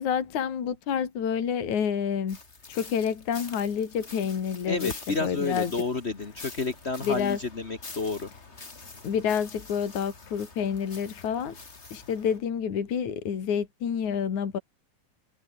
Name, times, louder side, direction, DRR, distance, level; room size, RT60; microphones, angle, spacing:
voice 1, 0.0-2.4 2.7-5.8 7.0-7.4 9.0-11.6 11.9-14.6, left 7 dB, 60° left, 4.0 m, -28 dB
sound 1, 2.3-12.4, left 3 dB, 20° left, 2.5 m, -45 dB
voice 2, 4.7-8.3, left 3 dB, 80° left, 0.5 m, -30 dB
omnidirectional pair, 4.0 m